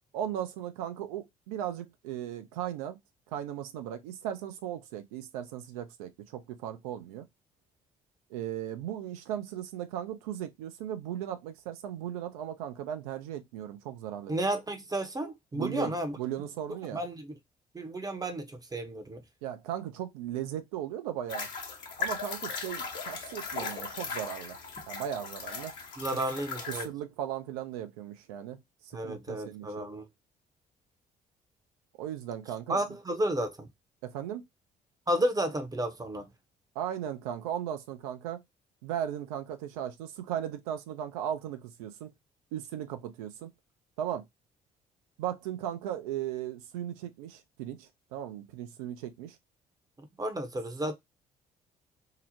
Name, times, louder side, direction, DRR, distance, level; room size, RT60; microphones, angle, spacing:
voice 1, 0.1-3.0 3.3-7.3 8.3-14.4 15.5-17.0 19.4-21.5 22.0-24.6 24.9-25.7 26.7-28.6 29.0-29.7 32.0-32.8 34.0-34.4 36.8-38.4 38.8-42.1 42.5-43.5 44.0-44.2 45.2-49.4, right 10 dB, 75° right, 0.5 m, -37 dB
voice 2, 14.3-16.2 16.9-17.3 17.7-19.2 26.0-26.9 28.9-30.0 32.7-33.7 35.1-36.3 50.0-50.9, right 1 dB, 20° right, 0.7 m, -32 dB
sound 1, 21.3-26.8, left 5 dB, 60° left, 0.9 m, -38 dB
2.8 x 2.0 x 2.6 m
figure-of-eight pair, 50°, 20 cm